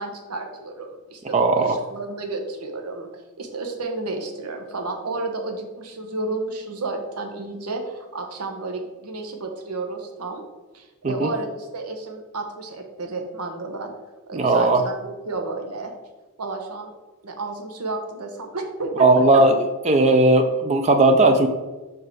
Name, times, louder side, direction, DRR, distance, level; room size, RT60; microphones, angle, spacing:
voice 1, 0.0-10.4 10.7-13.9 14.3-15.9 16.4-16.9 17.2-19.4, right 3 dB, 90° right, 4 dB, 1.1 m, -32 dB
voice 2, 1.3-1.8 11.0-11.3 14.3-14.8 19.0-19.6 19.9-21.5, right 2 dB, 30° right, 7 dB, 0.4 m, -17 dB
5.9 x 4.7 x 4.8 m, 1.2 s
head